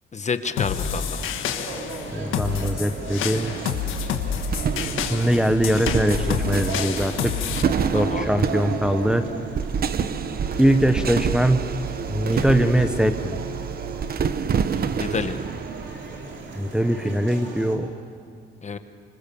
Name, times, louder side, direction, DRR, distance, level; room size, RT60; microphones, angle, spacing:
voice 1, 0.1-1.3 7.9-8.3 14.9-15.4 18.6-18.8, left 5 dB, 35° left, 9 dB, 1.3 m, -28 dB
sound 1, 0.5-17.8, right 3 dB, 65° right, 4.3 m, -38 dB
sound 2, 0.6-7.6, left 7 dB, 90° left, 1.6 m, -28 dB
voice 2, 2.1-3.5 5.1-7.4 7.9-9.3 10.6-11.7 12.1-13.4 16.6-17.9, equal, 5° right, 7 dB, 1.1 m, -22 dB
sound 3, 3.3-16.9, right 7 dB, 50° right, 1.1 m, -28 dB
25.5 x 25.5 x 7.1 m, 2.3 s
cardioid pair, 90°, 20 cm